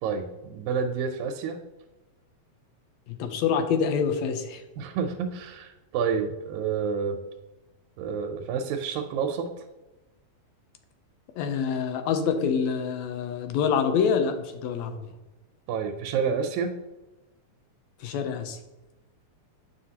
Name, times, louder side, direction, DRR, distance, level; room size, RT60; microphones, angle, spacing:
voice 1, 0.0-1.6 4.8-7.2 8.0-9.5 15.7-16.7, right 6 dB, 85° right, 5 dB, 2.0 m, -29 dB
voice 2, 3.1-4.6 11.4-15.1 18.0-18.6, left 6 dB, 80° left, 7 dB, 1.8 m, -26 dB
7.8 x 5.6 x 2.8 m, 1.0 s
omnidirectional pair, 3.3 m